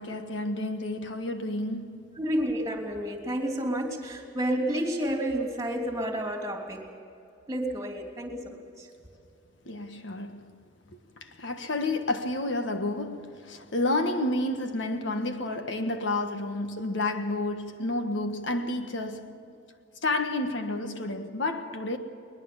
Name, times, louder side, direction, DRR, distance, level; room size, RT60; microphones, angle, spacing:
voice 1, 0.0-2.2 9.6-10.5 10.9-19.5 20.0-22.0, left 2 dB, 70° left, 1.5 m, -30 dB
voice 2, 2.2-6.9 7.5-8.9, right 1 dB, 20° right, 3.2 m, -30 dB
21.5 x 21.0 x 7.2 m
head